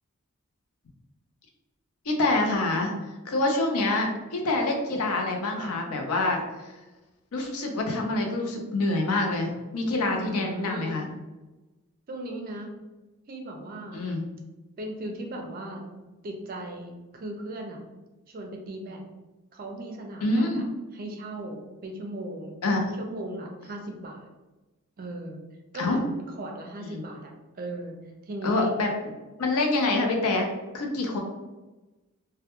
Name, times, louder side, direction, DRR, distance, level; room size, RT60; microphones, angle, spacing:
voice 1, 2.1-2.9 3.3-6.7 7.3-11.1 13.9-14.2 20.2-20.6 22.6-22.8 25.8-26.0 26.9-27.0 28.4-28.9 29.4-30.5 30.7-31.2, left 2 dB, 75° left, 2 dB, 0.5 m, -26 dB
voice 2, 10.2-11.0 12.1-12.8 13.3-14.1 14.8-15.8 16.2-17.8 18.3-19.0 19.5-20.6 20.9-22.6 23.0-24.3 25.0-25.4 25.7-28.7, right 1 dB, 40° right, 2 dB, 0.4 m, -37 dB
2.2 x 2.1 x 2.9 m, 1.1 s
head